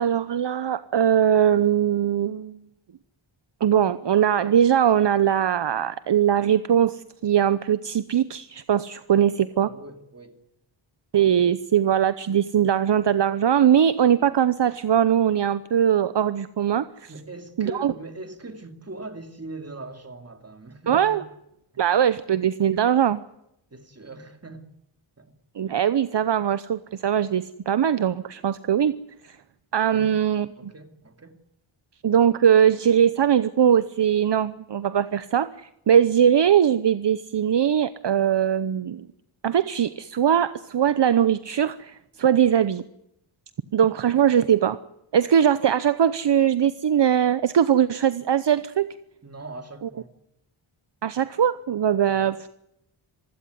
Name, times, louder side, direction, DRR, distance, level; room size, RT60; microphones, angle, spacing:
voice 1, 0.0-2.6 3.6-9.7 11.1-17.1 17.6-17.9 20.9-21.2 21.8-23.2 25.6-28.9 29.2-29.4 29.7-30.5 32.0-39.1 39.4-42.8 43.7-44.8 45.1-49.0 51.0-52.5, right 9 dB, 55° right, 0.8 m, -21 dB
voice 2, 9.6-10.4 17.1-21.2 21.7-21.8 23.7-24.7 25.2-25.3 29.9-30.1 30.6-31.4 49.2-50.1 52.1-52.3, right 2 dB, 30° right, 2.7 m, -41 dB
26.5 x 16.0 x 9.6 m
wide cardioid pair, 135°, 49 cm